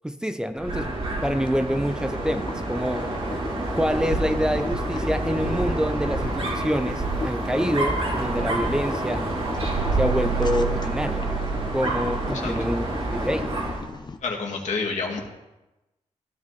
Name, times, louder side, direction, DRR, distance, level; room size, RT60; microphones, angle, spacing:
voice 1, 0.0-0.9 1.2-3.1 3.8-9.3 9.9-11.3 11.7-12.9 13.1-13.4, equal, 5° right, 9 dB, 0.7 m, -26 dB
Dog, 0.6-13.9, right 2 dB, 50° right, 3.0 m, -28 dB
Boiling, 1.4-14.2, left 4 dB, 35° left, 1.2 m, -37 dB
voice 2, 14.2-15.2, left 4 dB, 75° left, 0 dB, 2.6 m, -28 dB
15.0 x 13.0 x 4.3 m, 1.0 s
wide cardioid pair, 110°, 12 cm